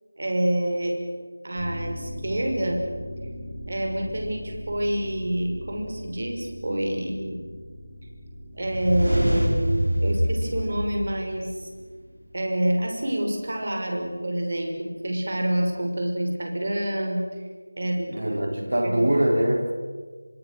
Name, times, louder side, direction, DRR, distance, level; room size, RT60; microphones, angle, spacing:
voice 1, 0.2-1.0 1.4-2.9 3.7-7.5 8.5-11.7 12.3-17.2 17.8-18.3 18.8-19.0, right 1 dB, 45° right, 2 dB, 5.9 m, -27 dB
sound 1, 1.6-13.7 14.0-14.1, equal, 5° right, 3.7 m, -40 dB
sound 2, 8.6-11.6, equal, 85° right, 5.9 m, -25 dB
voice 2, 18.1-19.7, right 1 dB, 60° right, 4 dB, 3.6 m, -23 dB
26.5 x 25.0 x 6.7 m, 1.5 s
figure-of-eight pair, 170°, 0 cm